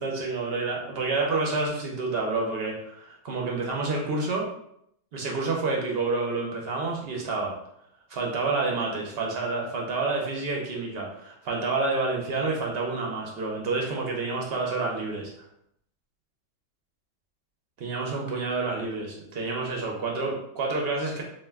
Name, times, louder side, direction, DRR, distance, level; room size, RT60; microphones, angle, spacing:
voice 1, 0.0-4.5 5.1-7.5 8.1-15.3 17.8-21.2, right 3 dB, 60° right, -1 dB, 0.7 m, -29 dB
2.5 x 2.1 x 3.3 m, 0.74 s
omnidirectional pair, 1.3 m